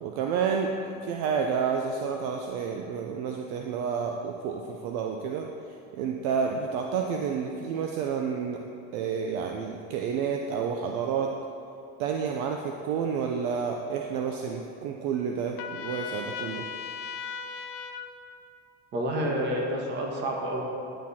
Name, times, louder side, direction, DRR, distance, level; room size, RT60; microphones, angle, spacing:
voice 1, 0.0-5.5 5.9-8.6 8.9-11.3 12.0-16.7, right 6 dB, 60° right, 2 dB, 0.6 m, -30 dB
Trumpet, 15.6-18.1, left 7 dB, 50° left, 0.5 m, -37 dB
voice 2, 18.9-20.6, right 1 dB, 35° right, -1 dB, 1.4 m, -29 dB
10.5 x 6.4 x 4.2 m, 2.6 s
cardioid pair, 165°, 30 cm